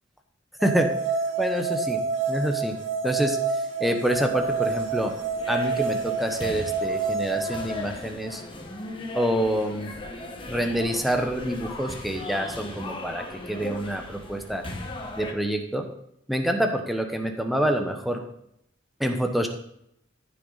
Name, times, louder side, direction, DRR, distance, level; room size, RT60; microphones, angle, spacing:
voice 1, 0.6-0.9 1.4-2.0 2.3-2.8 3.0-5.1 5.5-8.4 9.1-9.9 10.5-14.6 15.2-15.9 16.3-18.2 19.0-19.5, equal, ahead, 4 dB, 1.0 m, -27 dB
sound 1, 0.6-7.5, right 4 dB, 80° right, 2.8 m, -28 dB
sound 2, 4.1-15.3, left 2 dB, 25° left, 1.3 m, -38 dB
14.0 x 6.1 x 4.0 m, 0.76 s
head